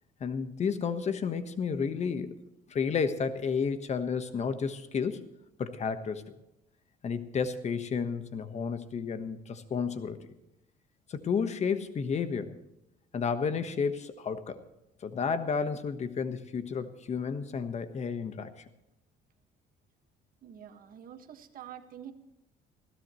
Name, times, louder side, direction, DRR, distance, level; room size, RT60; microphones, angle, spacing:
voice 1, 0.2-2.4 2.7-5.3 5.6-6.3 7.0-10.2 11.1-12.6 13.1-14.6 15.0-18.5, left 6 dB, 40° left, 10 dB, 1.3 m, -31 dB
voice 2, 20.4-22.1, right 9 dB, 55° right, 7 dB, 1.8 m, -47 dB
20.5 x 16.0 x 3.2 m, 0.88 s
cardioid pair, 110°, 17 cm